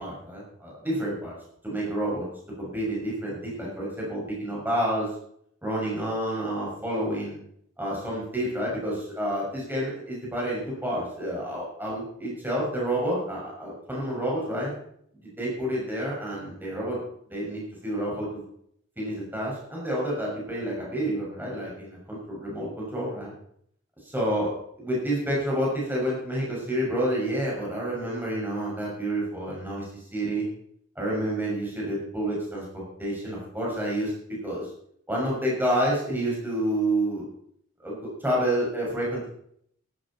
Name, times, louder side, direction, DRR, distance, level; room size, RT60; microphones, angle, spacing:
voice 1, 0.0-1.3 1.6-2.3 2.6-5.1 5.6-7.4 7.8-14.7 15.4-17.0 17.3-18.4 19.0-23.3 24.1-29.8 30.1-30.5 31.0-34.7 35.1-37.2 37.8-39.3, right 1 dB, 10° right, -4 dB, 6.3 m, -29 dB
14.0 x 12.5 x 4.3 m, 0.68 s
head